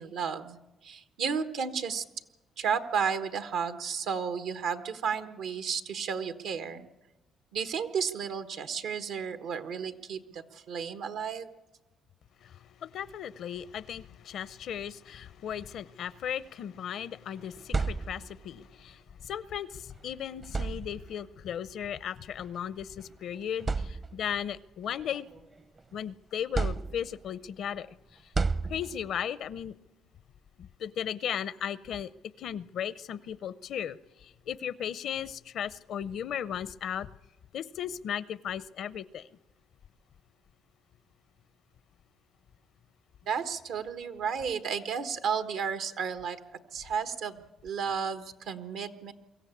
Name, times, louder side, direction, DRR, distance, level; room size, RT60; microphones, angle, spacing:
voice 1, 0.0-2.0 2.6-6.9 7.5-11.5 43.3-46.4 46.7-49.1, right 6 dB, 85° right, 1.3 m, -33 dB
voice 2, 12.4-25.3 25.9-27.9 28.7-29.7 30.6-32.1 32.4-37.1 37.5-39.3, left 9 dB, 70° left, 0.6 m, -36 dB
sound 1, 17.4-18.5 19.8-19.9 20.4-21.3 22.4-22.6 23.1-23.2 23.6-24.4 24.9-26.0 26.5-27.4 28.3-29.2, right 4 dB, 35° right, 0.7 m, -32 dB
23.5 x 14.5 x 8.4 m
cardioid pair, 90°, 0 cm